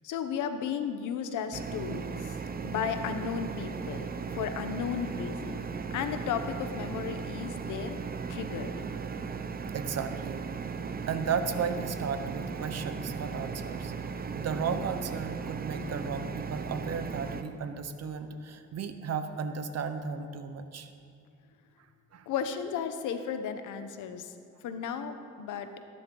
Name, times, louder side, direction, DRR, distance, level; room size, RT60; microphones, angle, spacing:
voice 1, 0.0-2.4 2.6-5.7 5.9-8.0 8.3-8.7 22.3-24.3 24.6-25.7, left 7 dB, 80° left, 9 dB, 1.0 m, -34 dB
sound 1, 1.5-17.4, right 5 dB, 30° right, 0.7 m, -37 dB
voice 2, 9.7-10.4 11.1-20.9 22.1-22.3, right 6 dB, 55° right, 9 dB, 1.0 m, -34 dB
18.0 x 10.5 x 3.9 m, 2.3 s
cardioid pair, 90°, 30 cm